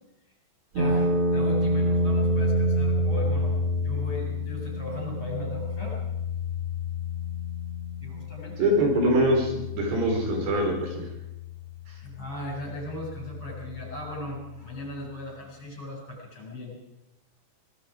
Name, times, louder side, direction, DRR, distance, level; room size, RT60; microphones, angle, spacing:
voice 1, 0.7-6.0 8.0-8.8 12.0-16.8, left 1 dB, 30° left, -1 dB, 7.7 m, -38 dB
sound 1, 0.8-14.8, left 1 dB, 40° right, 2.2 m, -29 dB
voice 2, 8.6-11.1, right 1 dB, 75° right, 2 dB, 5.9 m, -24 dB
25.5 x 20.5 x 5.0 m, 0.91 s
omnidirectional pair, 4.9 m